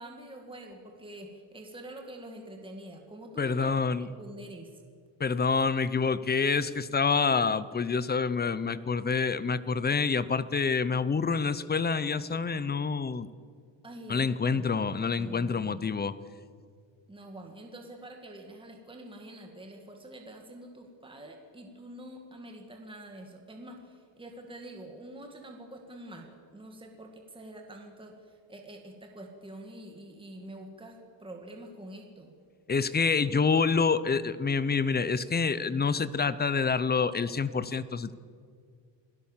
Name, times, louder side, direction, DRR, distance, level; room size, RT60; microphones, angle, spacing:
voice 1, 0.0-4.8 13.8-14.7 15.2-15.9 17.1-32.3, right 1 dB, 10° right, 2 dB, 2.1 m, -46 dB
voice 2, 3.4-4.1 5.2-13.3 14.1-16.1 32.7-38.1, left 5 dB, 20° left, 15 dB, 0.5 m, -27 dB
28.0 x 17.5 x 7.3 m, 2.1 s
cardioid pair, 180°, 50 cm